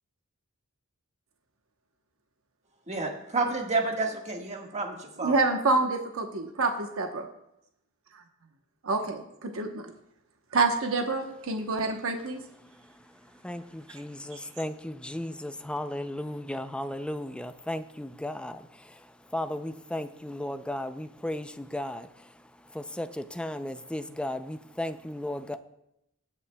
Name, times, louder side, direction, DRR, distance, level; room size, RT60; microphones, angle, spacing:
voice 1, 2.9-5.4, right 3 dB, 30° right, 2 dB, 1.5 m, -30 dB
voice 2, 5.2-7.2 8.8-9.9 10.5-12.4, right 3 dB, 65° right, 4 dB, 0.9 m, -27 dB
voice 3, 13.4-18.6 19.3-22.1 22.7-25.6, left 1 dB, 5° left, 10 dB, 0.4 m, -35 dB
19.5 x 8.5 x 2.2 m, 0.83 s
head